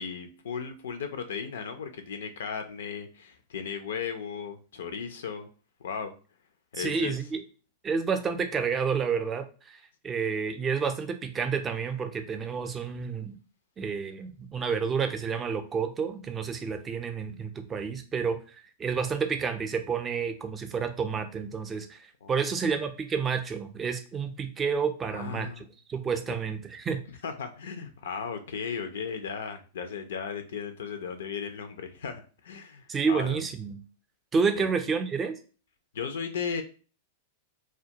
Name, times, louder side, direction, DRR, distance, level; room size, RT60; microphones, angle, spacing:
voice 1, 0.0-5.5 5.8-6.1 6.7-7.2 22.2-22.5 25.1-25.7 26.3-26.4 27.2-33.4 34.6-34.7 35.9-36.6, left 6 dB, 75° left, 8 dB, 0.4 m, -36 dB
voice 2, 6.7-7.4 7.8-13.4 13.8-27.0 32.9-33.8 34.3-35.3, right 6 dB, 25° right, 7 dB, 0.5 m, -30 dB
2.2 x 2.2 x 2.7 m, 0.36 s
hypercardioid pair, 110°, 0 cm